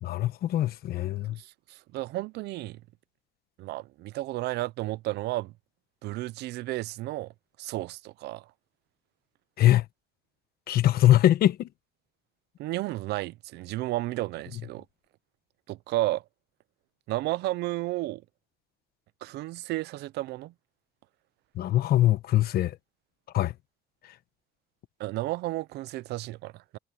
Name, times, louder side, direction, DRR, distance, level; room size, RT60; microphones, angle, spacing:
voice 1, 0.0-1.4 9.6-9.8 10.7-11.7 21.6-22.7 23.3-23.5, left 13 dB, 65° left, 1.2 m, -22 dB
voice 2, 1.4-2.8 3.6-5.5 6.0-7.3 7.6-8.5 12.6-14.8 15.7-16.2 17.1-18.2 19.2-20.5 25.0-26.8, right 17 dB, 80° right, 0.6 m, -32 dB
cardioid pair, 110°, 17 cm